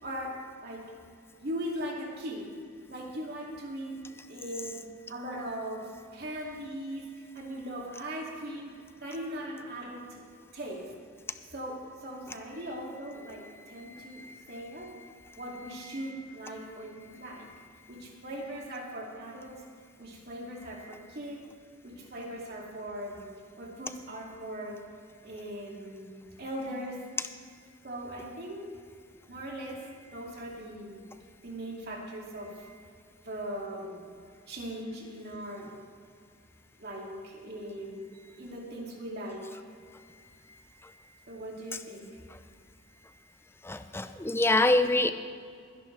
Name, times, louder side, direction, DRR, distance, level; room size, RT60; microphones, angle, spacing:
voice 1, 0.0-0.9 1.4-2.5 2.9-4.0 4.3-10.2 10.5-10.9 11.5-15.0 15.3-17.5 17.9-19.6 20.0-21.5 21.8-23.3 23.6-24.8 25.2-27.0 27.8-28.7 29.3-31.1 31.4-32.7 33.2-34.1 34.5-35.7 36.8-39.6 41.3-42.2, right 1 dB, 50° right, -2 dB, 2.5 m, -39 dB
voice 2, 13.9-14.4 43.6-45.1, left 2 dB, 10° left, 10 dB, 0.5 m, -26 dB
20.0 x 11.5 x 3.4 m, 2.2 s
head